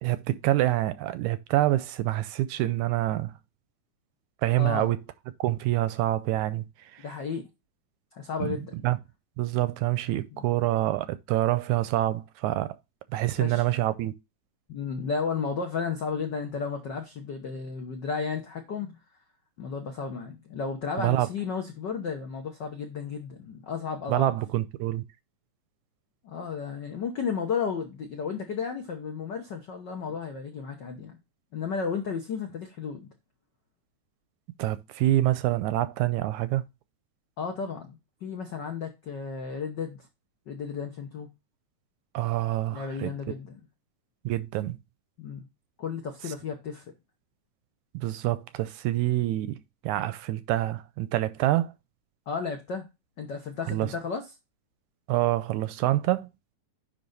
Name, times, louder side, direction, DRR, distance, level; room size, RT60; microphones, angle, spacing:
voice 1, 0.0-3.3 4.4-5.0 5.4-6.7 6.9-7.1 8.4-8.5 8.8-9.0 9.4-12.8 13.1-14.1 21.0-21.3 24.1-25.0 34.6-36.6 42.1-43.1 44.3-44.8 47.9-51.7 53.7-53.9 55.1-56.3, right 15 dB, 80° right, 1.9 m, -26 dB
voice 2, 4.6-4.9 7.0-7.4 8.1-8.7 10.3-10.4 13.4-13.6 14.7-19.0 19.6-24.3 26.2-31.2 31.5-33.1 37.4-40.1 40.5-41.3 42.7-43.6 45.2-45.5 45.8-46.8 52.3-52.9 53.2-54.2, left 5 dB, 70° left, 1.0 m, -33 dB
10.0 x 3.5 x 4.0 m
omnidirectional pair, 3.6 m